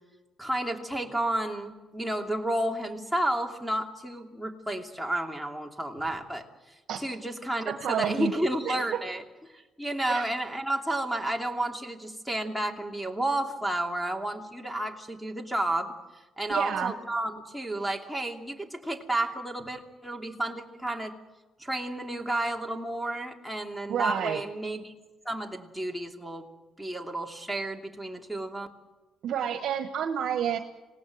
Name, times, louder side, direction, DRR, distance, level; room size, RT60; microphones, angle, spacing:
voice 1, 0.4-9.2 9.5-15.9 16.4-21.1 21.6-24.9 25.2-26.5 26.8-28.7, right 1 dB, ahead, 1 dB, 2.8 m, -31 dB
voice 2, 7.7-8.3 8.6-8.7 10.1-10.3 16.5-16.9 23.9-24.4 29.2-30.6, right 9 dB, 75° right, 6 dB, 1.3 m, -29 dB
26.5 x 18.0 x 7.8 m, 1.1 s
cardioid pair, 90°, 0 cm